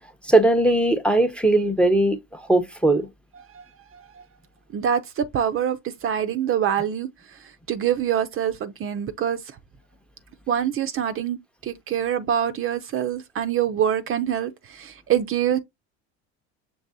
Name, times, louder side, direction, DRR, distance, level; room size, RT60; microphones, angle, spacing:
voice 1, 0.3-3.1, right 2 dB, 5° left, 0.7 m, -19 dB
voice 2, 4.7-7.4 7.7-9.4 10.5-15.6, right 9 dB, 40° right, 0.6 m, -25 dB
6.1 x 3.2 x 2.6 m
hypercardioid pair, 85°, 35 cm